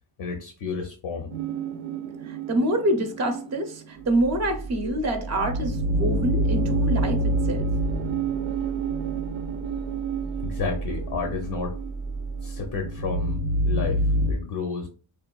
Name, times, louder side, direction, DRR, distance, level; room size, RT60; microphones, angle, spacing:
voice 1, 0.2-1.3 10.4-11.8 12.4-14.9, left 4 dB, 55° left, 0.6 m, -31 dB
sound 1, 1.3-14.3, right 2 dB, 80° right, 0.5 m, -28 dB
voice 2, 2.2-7.7, right 1 dB, 35° right, 0.5 m, -26 dB
sound 2, 3.9-13.6, right 4 dB, 10° left, 0.4 m, -36 dB
3.0 x 2.2 x 2.3 m
cardioid pair, 120°, 47 cm